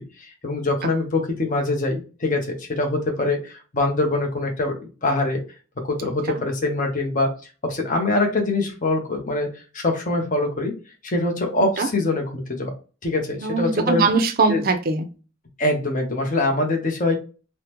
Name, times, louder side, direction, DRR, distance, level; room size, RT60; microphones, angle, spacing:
voice 1, 0.0-5.4 5.8-7.3 7.6-9.5 9.7-10.7 11.0-12.7 13.0-14.1 14.5-14.6 15.6-17.2, left 2 dB, 40° left, 0.7 m, -23 dB
voice 2, 13.4-15.1, right 4 dB, 45° right, 0.4 m, -21 dB
3.4 x 2.1 x 2.9 m
head